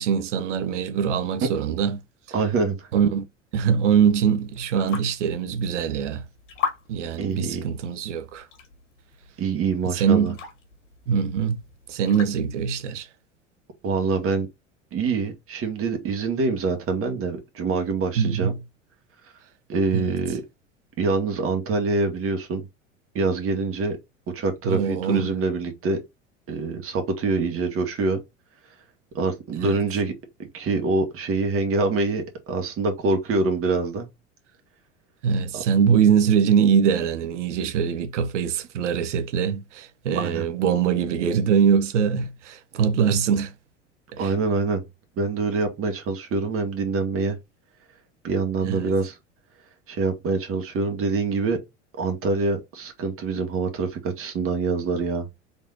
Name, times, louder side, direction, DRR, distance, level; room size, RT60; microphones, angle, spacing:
voice 1, 0.0-2.0 2.9-3.2 3.5-6.2 6.9-8.5 9.8-10.4 11.1-11.6 11.9-13.1 18.1-18.6 19.9-20.2 24.6-25.3 29.6-29.8 35.2-43.5 44.1-44.3 48.6-48.9, right 7 dB, 70° right, 0.9 m, -23 dB
voice 2, 2.3-2.9 7.2-7.6 9.4-10.3 13.8-14.5 14.9-18.5 19.7-20.4 21.0-22.7 23.1-24.0 24.3-26.0 26.5-28.2 29.1-30.1 30.4-34.1 35.5-35.6 40.2-40.4 44.2-44.8 45.2-47.4 48.2-49.2 49.9-51.6 52.0-55.3, right 4 dB, 35° right, 1.9 m, -25 dB
Gentle Water splashes, 4.3-12.8, left 7 dB, 70° left, 2.1 m, -39 dB
4.0 x 4.0 x 2.7 m
figure-of-eight pair, 80°, 37 cm